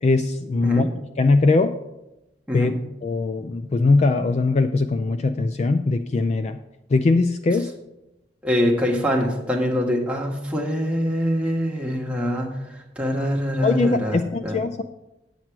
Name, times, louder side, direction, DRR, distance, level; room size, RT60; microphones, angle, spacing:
voice 1, 0.0-0.9 1.2-1.7 2.5-2.7 3.0-6.6 6.9-7.7 13.6-14.8, left 3 dB, 35° left, 9 dB, 0.3 m, -20 dB
voice 2, 8.4-14.6, equal, 5° right, -1 dB, 1.3 m, -24 dB
9.4 x 7.4 x 4.6 m, 0.94 s
head